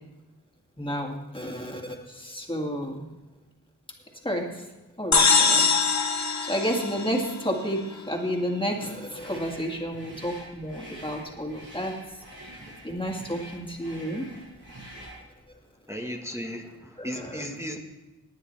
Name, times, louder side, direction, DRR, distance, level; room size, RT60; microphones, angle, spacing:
voice 1, 0.8-3.1 4.2-4.6 5.0-5.7 6.4-11.9 12.4-12.5 12.8-14.2 17.0-17.4, equal, 15° left, 1 dB, 2.0 m, -31 dB
sound 1, 5.1-7.7, left 4 dB, 45° left, 1.0 m, -23 dB
sound 2, 9.1-15.3, right 1 dB, 70° right, 5.1 m, -46 dB
voice 2, 15.9-17.8, equal, 5° right, 1 dB, 1.2 m, -35 dB
19.0 x 9.7 x 3.2 m, 1.0 s
wide cardioid pair, 60°, 39 cm